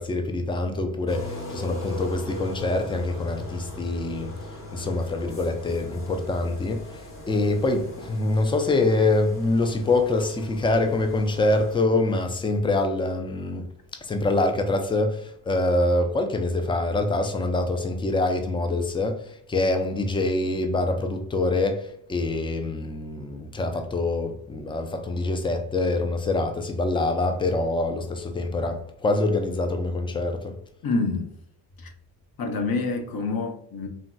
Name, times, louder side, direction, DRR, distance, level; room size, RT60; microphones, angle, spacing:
voice 1, 0.0-30.6, left 2 dB, 10° left, 0.3 m, -25 dB
sound 1, 1.1-11.8, left 1 dB, 30° left, 0.9 m, -39 dB
voice 2, 30.8-31.3 32.4-33.9, left 3 dB, 50° left, 0.7 m, -27 dB
3.0 x 2.7 x 2.2 m
supercardioid pair, 70°, 47 cm